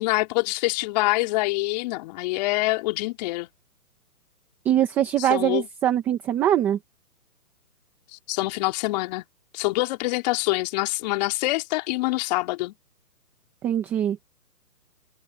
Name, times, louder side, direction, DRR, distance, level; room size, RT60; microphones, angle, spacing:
voice 1, 0.0-3.5 5.2-5.7 8.1-9.2 9.5-12.7, left 20 dB, 25° left, 3.8 m, -25 dB
voice 2, 4.6-6.8 13.6-14.2, right 11 dB, 5° right, 0.7 m, -22 dB
hypercardioid pair, 150°, 46 cm